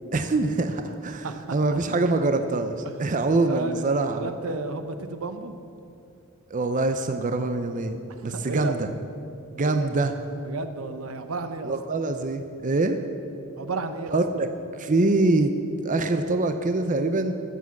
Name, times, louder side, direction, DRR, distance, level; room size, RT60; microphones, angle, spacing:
voice 1, 0.1-1.3 1.5-4.3 6.5-8.0 8.2-8.9 9.5-10.1 11.6-13.0 14.1-14.5 14.7-15.5 15.8-17.3, right 2 dB, 40° right, 8 dB, 0.6 m, -24 dB
voice 2, 1.2-1.8 2.8-3.0 3.5-5.5 8.2-8.8 9.6-9.9 10.4-11.7 13.6-14.2, right 3 dB, 80° right, 9 dB, 0.8 m, -33 dB
14.0 x 7.5 x 7.1 m, 2.6 s
head